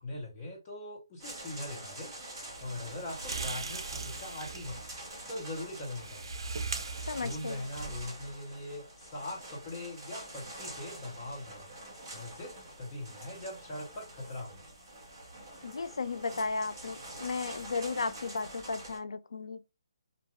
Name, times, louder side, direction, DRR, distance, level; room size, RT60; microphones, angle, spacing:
voice 1, 0.0-2.1 2.6-4.8 5.3-6.3 7.1-11.7 12.1-14.6, left 1 dB, 20° left, 0.8 m, -41 dB
sound 1, 1.2-19.0, right 1 dB, 20° right, 1.2 m, -46 dB
sound 2, 2.5-8.1, right 4 dB, 60° right, 0.5 m, -40 dB
voice 2, 7.1-7.6 15.6-19.6, left 4 dB, 90° left, 0.4 m, -35 dB
2.5 x 2.3 x 3.0 m
hypercardioid pair, 175°, 3 cm